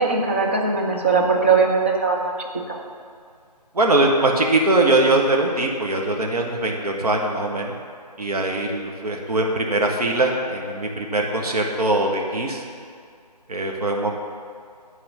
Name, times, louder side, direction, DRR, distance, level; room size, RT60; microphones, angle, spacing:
voice 1, 0.0-2.3 2.7-2.8, right 4 dB, 20° right, -1 dB, 0.5 m, -20 dB
voice 2, 3.7-7.7 8.2-12.6 13.5-14.1, right 2 dB, 65° right, 1 dB, 1.2 m, -21 dB
9.6 x 4.3 x 6.3 m, 2.2 s
figure-of-eight pair, 160°, 21 cm